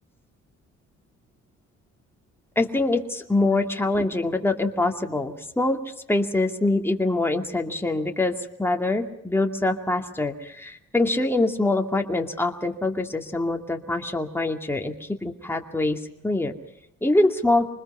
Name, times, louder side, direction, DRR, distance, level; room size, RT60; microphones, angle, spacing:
voice 1, 2.6-5.8 6.1-16.5 17.0-17.7, left 2 dB, 10° left, 3 dB, 2.3 m, -24 dB
26.5 x 20.5 x 5.6 m, 0.81 s
cardioid pair, 90°, 30 cm